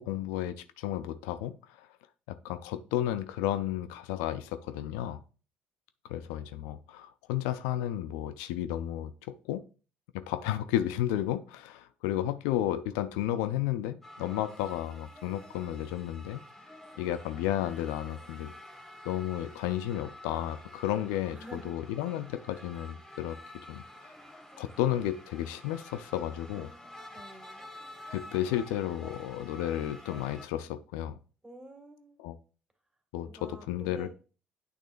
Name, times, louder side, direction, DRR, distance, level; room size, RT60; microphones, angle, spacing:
voice 1, 0.0-1.9 2.3-5.2 6.0-9.6 10.1-16.4 17.0-18.5 19.0-24.1 24.6-26.7 28.1-31.2 32.2-32.4 33.1-34.1, left 12 dB, 75° left, 13 dB, 0.4 m, -33 dB
sound 1, 14.0-30.5, left 1 dB, 5° left, 1.6 m, -49 dB
voice 2, 14.2-14.6 21.3-21.7 22.5-22.6 26.5-27.6 31.4-32.3 33.2-34.1, right 1 dB, 15° right, 5 dB, 2.1 m, -49 dB
8.7 x 6.2 x 2.5 m, 0.36 s
hypercardioid pair, 55°, 5 cm